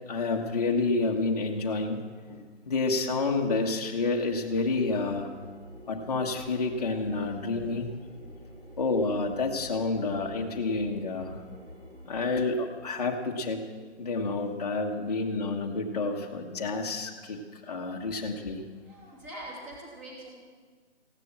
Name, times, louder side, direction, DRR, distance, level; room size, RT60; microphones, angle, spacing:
voice 1, 0.0-2.0 2.3-5.3 5.9-7.9 8.8-11.4 12.0-13.6 14.0-18.6, left 3 dB, 35° left, 1 dB, 1.4 m, -29 dB
sound 1, 4.2-12.5, equal, 80° right, 5.5 m, -47 dB
voice 2, 18.8-20.3, right 1 dB, 15° right, -3 dB, 2.7 m, -43 dB
16.0 x 11.5 x 7.4 m, 1.5 s
hypercardioid pair, 170°, 36 cm